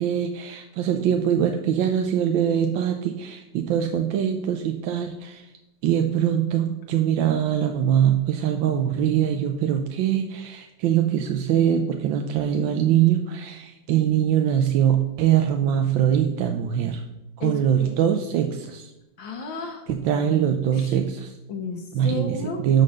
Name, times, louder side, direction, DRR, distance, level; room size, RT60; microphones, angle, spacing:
voice 1, 0.0-5.5 5.8-17.0 17.4-18.9 19.9-21.4 21.9-22.4 22.6-22.8, right 9 dB, 85° right, 5 dB, 1.4 m, -22 dB
voice 2, 19.2-19.8 20.8-20.9 21.5-22.6, left 4 dB, 80° left, 1 dB, 1.7 m, -32 dB
11.5 x 4.3 x 6.3 m, 0.96 s
omnidirectional pair, 2.1 m